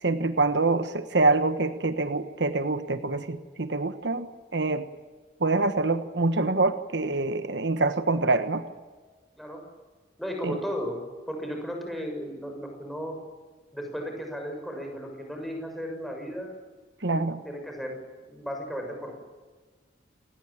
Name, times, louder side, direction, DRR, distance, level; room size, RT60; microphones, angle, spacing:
voice 1, 0.0-4.3 4.5-4.9 5.4-8.6 10.4-10.6 17.0-17.4, right 3 dB, 70° right, 10 dB, 1.3 m, -25 dB
voice 2, 10.2-11.0 11.3-13.1 13.7-16.5 17.0-18.0 18.3-19.1, equal, ahead, 2 dB, 6.8 m, -35 dB
28.0 x 19.5 x 8.9 m, 1.4 s
head